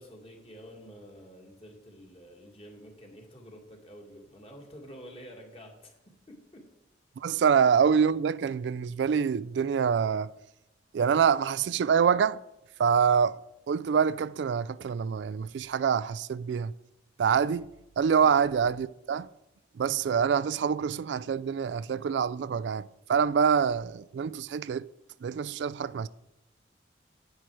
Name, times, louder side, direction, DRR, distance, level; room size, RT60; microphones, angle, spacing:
voice 1, 0.0-6.7 18.2-18.5, equal, 30° left, 2.0 m, -49 dB
voice 2, 7.2-10.3 10.9-12.4 12.8-13.4 13.7-16.7 17.2-17.7 18.0-19.3 19.8-24.9 25.2-26.1, right 7 dB, 70° right, 0.3 m, -26 dB
10.0 x 9.2 x 4.8 m
head